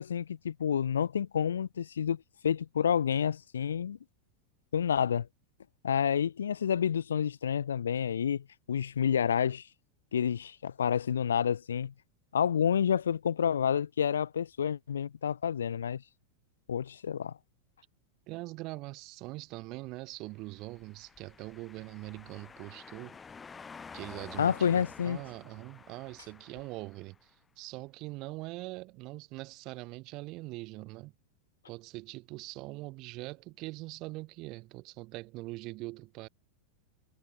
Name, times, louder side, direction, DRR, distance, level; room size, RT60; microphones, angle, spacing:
voice 1, 0.0-4.0 4.7-5.3 5.8-9.7 10.1-11.9 12.3-16.0 16.7-17.3 24.4-25.2, left 8 dB, 65° left, 1.9 m, -29 dB
voice 2, 18.3-23.2 23.9-31.1 31.7-36.3, right 22 dB, 40° right, 4.4 m, -42 dB
sound 1, 20.5-27.2, left 5 dB, 15° left, 3.1 m, -50 dB
figure-of-eight pair, 90°, 0 cm